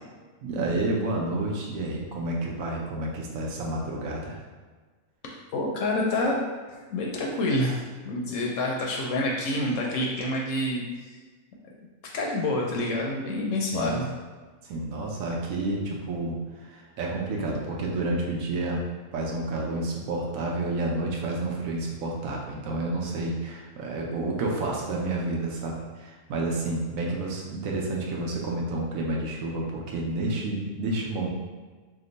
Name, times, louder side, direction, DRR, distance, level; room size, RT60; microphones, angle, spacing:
voice 1, 0.4-4.4 13.7-14.0 14.6-18.8 19.1-31.3, right 2 dB, 75° right, -1 dB, 1.0 m, -30 dB
voice 2, 5.5-6.4 6.7-11.2 12.1-14.1, left 1 dB, 70° left, -1 dB, 0.9 m, -27 dB
2.9 x 2.2 x 3.8 m, 1.4 s
omnidirectional pair, 1.5 m